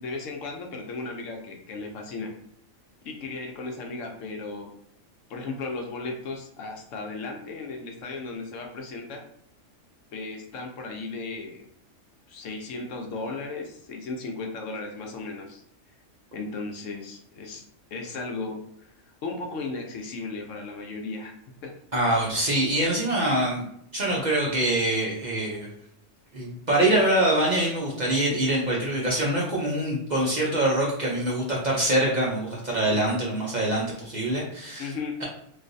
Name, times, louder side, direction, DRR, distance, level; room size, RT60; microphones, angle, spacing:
voice 1, 0.0-2.3 3.0-4.7 5.3-9.2 10.1-11.6 12.3-15.6 16.3-17.7 17.9-18.9 19.2-21.4 21.6-21.7 34.8-35.2, left 3 dB, 75° left, 3 dB, 0.9 m, -35 dB
voice 2, 21.9-23.6 23.9-25.7 26.3-34.9, right 1 dB, 45° right, -4 dB, 0.6 m, -24 dB
3.1 x 2.6 x 2.6 m, 0.70 s
omnidirectional pair, 1.4 m